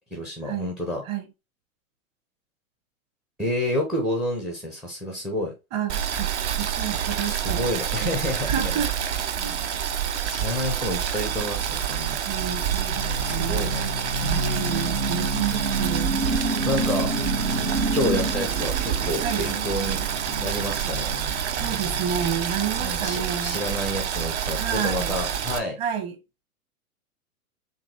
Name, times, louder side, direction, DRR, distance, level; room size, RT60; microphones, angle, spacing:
voice 1, 0.1-1.0 3.4-5.5 7.3-8.8 9.4-9.7 10.3-12.2 13.3-13.8 16.7-17.1 17.9-20.0 20.4-21.1 22.8-25.8, left 1 dB, ahead, 0.4 m, -29 dB
voice 2, 5.7-7.7 8.0-8.2 8.4-8.9 9.4-9.7 12.3-16.1 19.2-19.5 21.5-23.6 24.6-25.2 25.8-26.2, right 8 dB, 35° right, 1.3 m, -30 dB
Boiling, 5.9-25.6, right 9 dB, 55° right, 0.7 m, -27 dB
sound 1, 12.3-23.9, right 1 dB, 80° right, 1.8 m, -31 dB
5.1 x 2.7 x 3.1 m
figure-of-eight pair, 105°, 42 cm